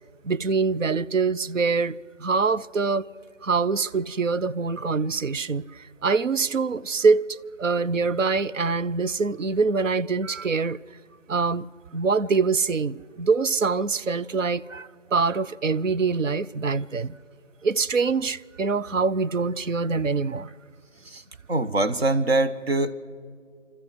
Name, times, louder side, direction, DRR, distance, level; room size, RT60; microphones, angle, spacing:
voice 1, 0.2-3.1 3.4-10.8 11.3-11.7 11.9-17.1 17.6-20.5, right 4 dB, 85° right, 0.6 m, -24 dB
voice 2, 21.5-22.9, right 2 dB, 55° right, 1.0 m, -23 dB
27.5 x 13.5 x 7.7 m
figure-of-eight pair, 170°, 37 cm